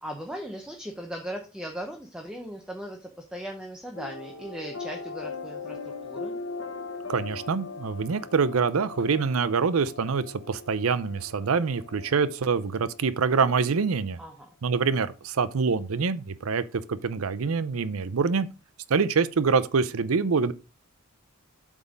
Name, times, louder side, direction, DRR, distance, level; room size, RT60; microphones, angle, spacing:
voice 1, 0.0-6.4 14.2-14.5, equal, 5° right, 0.8 m, -38 dB
sound 1, 3.9-13.3, left 4 dB, 65° left, 1.2 m, -40 dB
voice 2, 7.1-14.2 14.6-16.6 16.9-18.5 18.9-20.5, right 5 dB, 80° right, 0.6 m, -25 dB
8.1 x 3.6 x 5.1 m
head